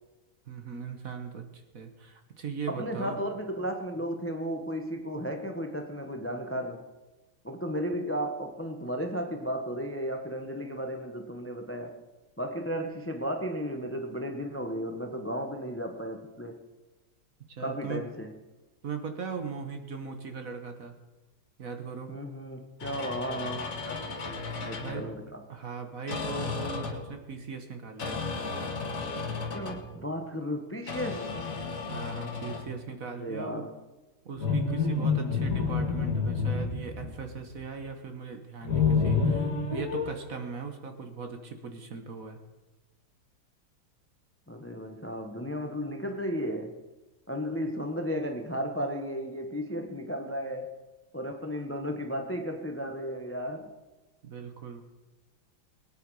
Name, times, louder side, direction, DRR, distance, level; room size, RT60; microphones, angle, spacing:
voice 1, 0.5-3.2 17.5-18.1 18.8-20.9 21.6-22.1 24.8-25.1 25.5-28.2 31.9-33.6 34.2-42.4 54.2-54.8, right 5 dB, 45° right, 1.5 m, -39 dB
voice 2, 2.7-6.8 7.4-12.0 12.4-16.6 17.6-18.3 22.1-25.4 29.5-31.4 33.2-33.7 44.5-46.7 47.3-50.7 51.1-53.7, equal, 10° left, 0.6 m, -34 dB
sound 1, 22.8-25.1 26.1-27.1 28.0-29.9 30.9-32.7 34.4-37.6 38.6-40.1, left 4 dB, 45° left, 2.1 m, -30 dB
21.5 x 9.6 x 4.8 m
omnidirectional pair, 2.2 m